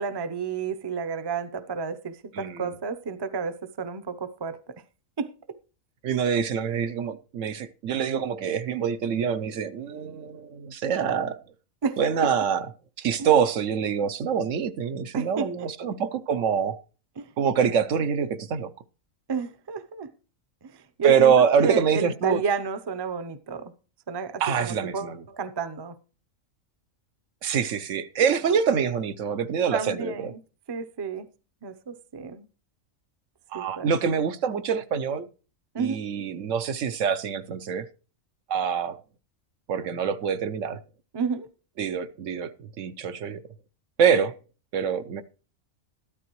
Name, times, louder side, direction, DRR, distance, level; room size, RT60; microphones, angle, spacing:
voice 1, 0.0-4.7 5.2-5.3 11.8-12.0 13.2-13.3 15.1-15.5 17.2-17.3 19.3-20.1 20.6-23.7 24.1-25.9 29.7-30.4 30.7-31.3 31.6-32.5 33.5-33.9 35.7-36.0 41.1-41.5, right 5 dB, 25° right, 0.6 m, -31 dB
voice 2, 2.3-2.7 6.0-11.4 12.0-12.7 13.0-16.8 17.4-18.7 21.0-22.4 24.4-25.2 27.4-30.3 33.5-35.3 35.8-37.9 38.5-39.0 39.7-40.8 41.8-42.5 42.8-43.4 44.0-44.3 44.7-45.2, right 7 dB, 70° right, 1.1 m, -25 dB
13.5 x 12.0 x 3.1 m
omnidirectional pair, 1.4 m